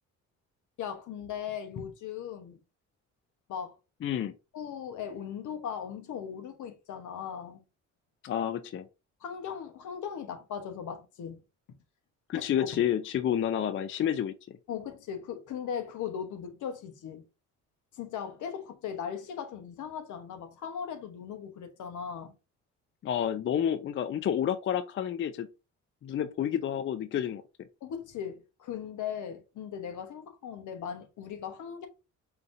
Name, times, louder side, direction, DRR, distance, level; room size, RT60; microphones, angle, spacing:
voice 1, 0.8-2.6 3.5-3.8 4.5-7.6 9.2-11.4 12.3-12.7 14.7-17.2 17.9-22.4 27.8-31.9, left 8 dB, 75° left, 1.0 m, -38 dB
voice 2, 4.0-4.3 8.2-8.9 12.3-14.6 23.0-25.5 26.0-27.4, left 9 dB, 40° left, 0.4 m, -29 dB
5.0 x 2.8 x 2.6 m
cardioid pair, 90°, 30 cm